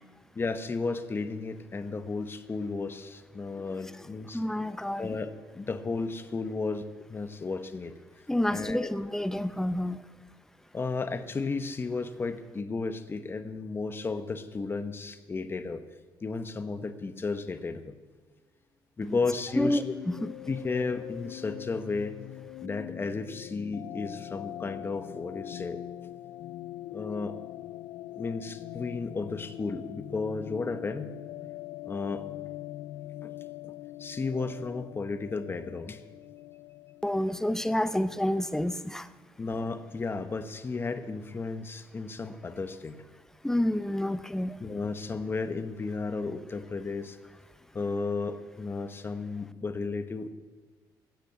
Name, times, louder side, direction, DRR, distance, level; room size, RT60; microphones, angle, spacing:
voice 1, 0.3-4.4 5.0-7.9 8.5-8.9 10.7-15.8 16.2-18.0 19.0-19.8 20.5-22.2 22.6-25.8 26.9-27.4 28.1-31.2 31.8-32.2 33.2-33.3 34.0-36.0 39.4-43.0 44.6-47.2 47.7-50.3, left 4 dB, 25° left, 10 dB, 1.1 m, -33 dB
voice 2, 4.3-5.1 8.3-10.0 19.0-19.2 19.6-20.3 37.0-39.1 43.4-44.6, left 1 dB, 5° left, 13 dB, 0.6 m, -29 dB
sound 1, 19.3-38.8, left 15 dB, 80° left, 0.5 m, -43 dB
15.0 x 8.2 x 8.6 m, 1.4 s
cardioid pair, 100°, 8 cm